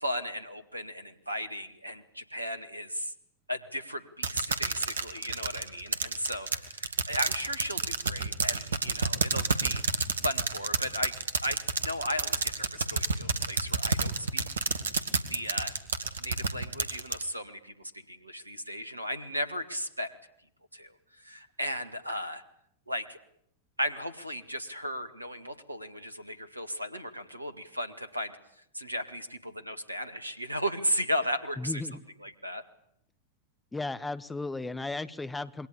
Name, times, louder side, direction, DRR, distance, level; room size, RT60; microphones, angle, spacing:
voice 1, 0.0-3.1 3.5-9.8 10.2-14.4 15.3-15.7 16.2-20.1 20.7-22.4 22.9-23.2 23.8-28.4 28.7-31.8 32.2-32.6, equal, 85° right, 12 dB, 2.1 m, -35 dB
sound 1, 4.2-17.2, right 4 dB, 70° right, 2.2 m, -29 dB
voice 2, 31.6-32.0 33.7-35.7, left 2 dB, 10° left, 13 dB, 1.4 m, -35 dB
27.5 x 22.0 x 8.7 m, 0.71 s
figure-of-eight pair, 90°, 0 cm